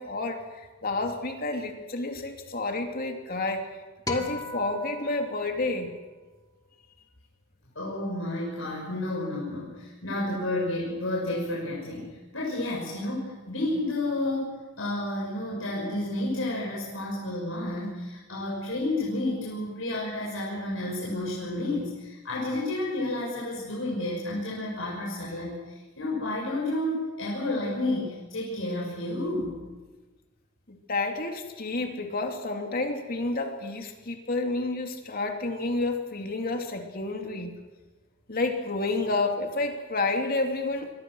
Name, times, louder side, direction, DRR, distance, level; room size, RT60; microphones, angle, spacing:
voice 1, 0.0-3.7 4.1-5.9 30.7-37.5 38.3-41.0, left 2 dB, 50° left, 4 dB, 2.9 m, -30 dB
sound 1, 4.1-6.5, left 2 dB, 20° left, 2.5 m, -38 dB
voice 2, 7.7-29.6, left 1 dB, 70° left, -5 dB, 6.6 m, -31 dB
27.5 x 23.0 x 6.4 m, 1.2 s
head